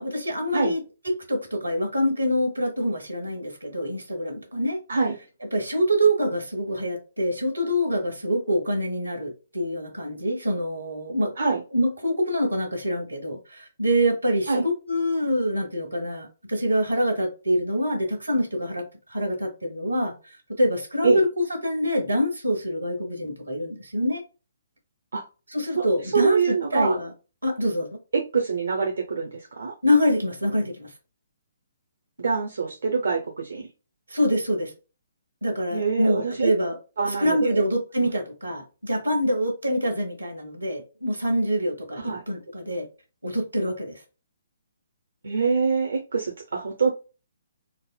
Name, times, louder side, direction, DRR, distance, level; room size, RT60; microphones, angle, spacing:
voice 1, 0.0-4.8 5.5-11.3 11.7-18.8 19.1-20.1 20.6-21.3 21.6-24.2 25.5-27.1 27.4-27.9 29.8-30.9 34.1-34.7 35.4-36.8 37.2-42.9 43.2-44.0, equal, 85° right, 1.2 m, -25 dB
voice 2, 26.1-27.0 28.1-29.7 32.2-33.7 35.7-36.5 37.0-37.6 42.0-42.2 45.2-46.9, right 5 dB, 65° right, 0.6 m, -24 dB
4.0 x 2.0 x 2.3 m
figure-of-eight pair, 130°, 0 cm